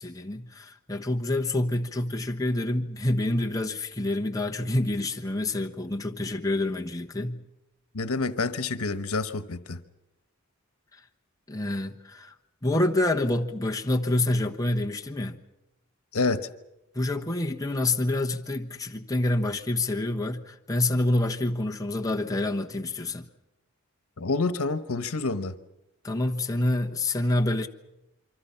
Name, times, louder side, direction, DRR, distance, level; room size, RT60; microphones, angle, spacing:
voice 1, 0.0-7.4 10.9-11.0 11.5-12.3 12.6-15.4 16.9-23.3 26.0-27.7, left 1 dB, 15° left, 1.1 m, -27 dB
voice 2, 7.9-9.8 16.1-16.5 24.2-25.6, left 3 dB, 85° left, 1.2 m, -28 dB
26.5 x 24.5 x 5.8 m
head